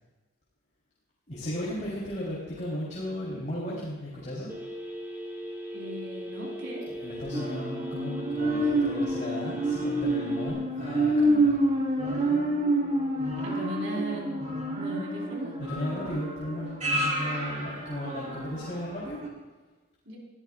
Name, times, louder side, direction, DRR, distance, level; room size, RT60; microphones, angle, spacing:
voice 1, 1.3-4.5 6.9-11.5 15.6-19.2, equal, 40° left, -6 dB, 4.0 m, -35 dB
Telephone, 4.5-10.5, equal, 10° right, 3.0 m, -38 dB
voice 2, 5.7-6.9 13.4-14.4 14.8-15.5 20.1-20.2, equal, 75° right, -2 dB, 4.5 m, -37 dB
sound 1, 7.3-18.8 19.2-19.3, right 1 dB, 40° right, 3.4 m, -28 dB
23.5 x 14.5 x 2.5 m, 1.3 s
head